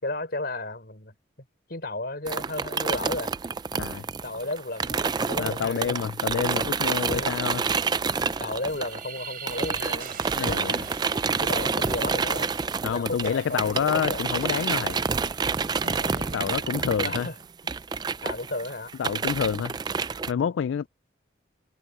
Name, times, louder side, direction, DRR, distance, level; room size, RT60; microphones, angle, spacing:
voice 1, 0.0-1.1 1.7-3.3 4.2-6.0 7.0-7.4 8.4-10.8 11.4-12.5 12.8-14.3 15.9-16.4 17.0-17.3 18.2-18.9, left 2 dB, 50° left, 4.2 m, -34 dB
sound 1, 2.3-9.2 9.5-20.3, right 5 dB, 20° right, 0.3 m, -28 dB
voice 2, 3.7-4.0 5.4-7.6 10.3-10.8 12.8-15.0 16.3-17.3 19.0-19.8 20.3-20.9, left 7 dB, 75° left, 0.3 m, -28 dB
sound 2, 8.4-11.4 11.8-16.5, right 6 dB, 45° right, 5.5 m, -43 dB
head